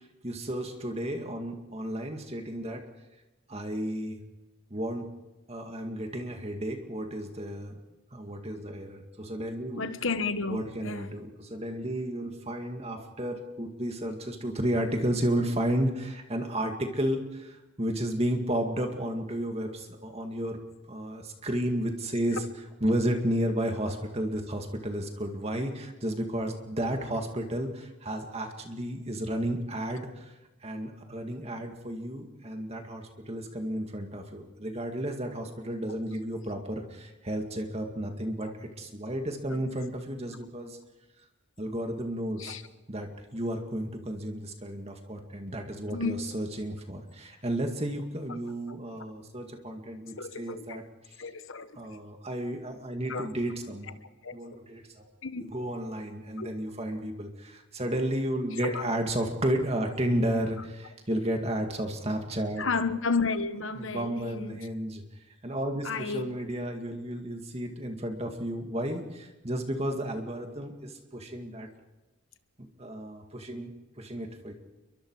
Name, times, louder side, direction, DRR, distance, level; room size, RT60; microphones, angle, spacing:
voice 1, 0.2-2.8 3.5-4.2 4.7-5.1 5.5-7.8 8.1-9.9 10.5-20.6 20.9-22.5 22.8-30.3 30.6-40.8 41.6-42.6 42.9-51.2 51.7-54.0 54.3-55.1 55.4-62.6 63.8-65.0 65.4-71.7 72.8-73.7 74.0-74.5, right 1 dB, 30° right, 2.2 m, -32 dB
voice 2, 9.7-11.1 22.3-22.5 39.5-39.6 42.4-42.6 45.9-46.2 50.2-50.8 51.2-51.7 53.1-53.3 54.2-54.4 55.2-55.5 56.4-56.5 58.6-58.8 62.6-64.7 65.8-66.4, left 4 dB, 60° left, 1.2 m, -32 dB
29.0 x 23.0 x 4.8 m
head